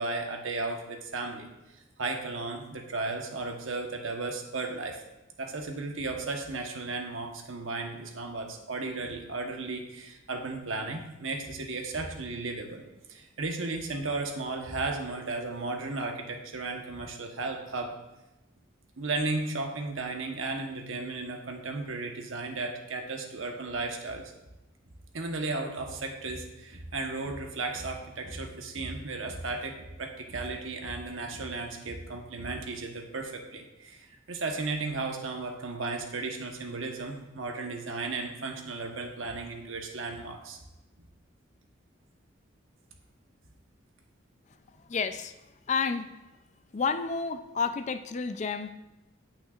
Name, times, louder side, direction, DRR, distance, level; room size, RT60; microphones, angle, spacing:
voice 1, 0.0-5.0 5.4-12.8 13.1-17.9 19.0-24.3 25.1-40.6, right 3 dB, 85° right, 3 dB, 1.1 m, -35 dB
voice 2, 44.8-45.3 45.7-46.1 46.7-48.7, left 5 dB, 35° left, 10 dB, 0.4 m, -30 dB
8.8 x 8.6 x 2.4 m, 0.98 s
head